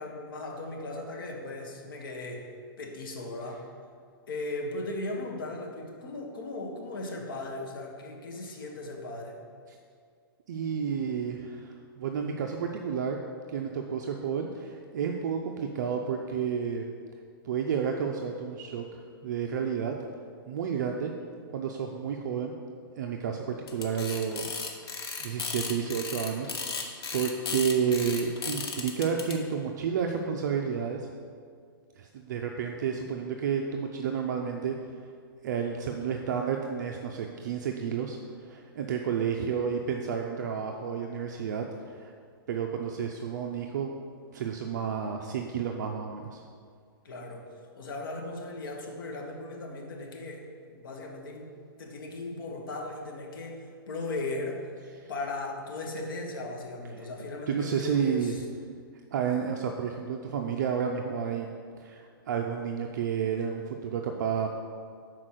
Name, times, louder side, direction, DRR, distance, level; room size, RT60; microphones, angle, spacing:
voice 1, 0.0-2.5 2.8-3.7 4.3-9.4 12.3-12.4 47.0-47.4 47.7-51.5 51.8-54.6 55.1-58.4, left 2 dB, 65° left, 1 dB, 1.3 m, -37 dB
voice 2, 10.5-13.2 13.5-16.8 17.4-19.9 20.5-21.1 21.5-22.6 23.0-31.1 32.0-34.8 35.0-35.1 35.4-42.1 42.5-43.9 44.3-46.4 55.0-55.1 57.5-58.3 59.1-61.5 61.8-64.5, right 7 dB, 50° right, 3 dB, 0.5 m, -31 dB
sound 1, 23.7-29.3, left 5 dB, 85° left, 1.1 m, -35 dB
5.8 x 4.5 x 6.4 m, 2.1 s
hypercardioid pair, 170°, 13 cm